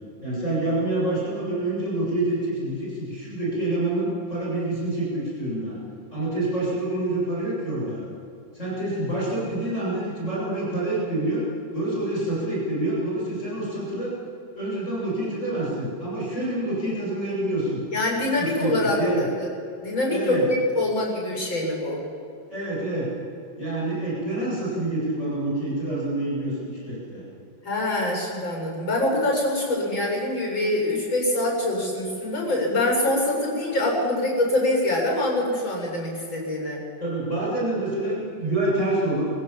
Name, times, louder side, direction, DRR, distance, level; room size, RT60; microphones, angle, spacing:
voice 1, 0.2-5.8 6.1-8.0 8.5-11.4 11.7-14.1 14.6-17.8 18.4-19.3 20.1-20.4 22.5-23.1 23.6-27.2 37.0-39.3, right 1 dB, 35° left, -6 dB, 8.2 m, -27 dB
voice 2, 17.9-19.3 19.8-22.0 27.6-36.8, left 1 dB, 90° left, -2 dB, 8.1 m, -24 dB
24.5 x 16.0 x 7.6 m, 2.5 s
omnidirectional pair, 2.1 m